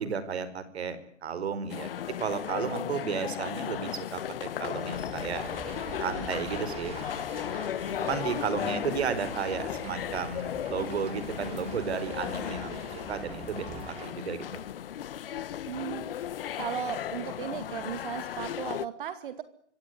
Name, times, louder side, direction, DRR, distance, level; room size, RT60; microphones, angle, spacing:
voice 1, 0.0-1.9 2.2-4.2 4.6-5.4 6.0-7.0 7.3-7.7 8.0-12.8 13.1-14.6, right 6 dB, 60° right, 13 dB, 5.1 m, -33 dB
sound 1, 1.7-18.9, left 10 dB, 50° left, 1.4 m, -36 dB
sound 2, 4.9-14.1, right 7 dB, 15° right, 2.9 m, -44 dB
voice 2, 15.7-16.1 16.6-19.4, right 9 dB, 45° right, 11 dB, 2.3 m, -36 dB
25.5 x 17.5 x 9.8 m, 0.62 s
hypercardioid pair, 150°, 36 cm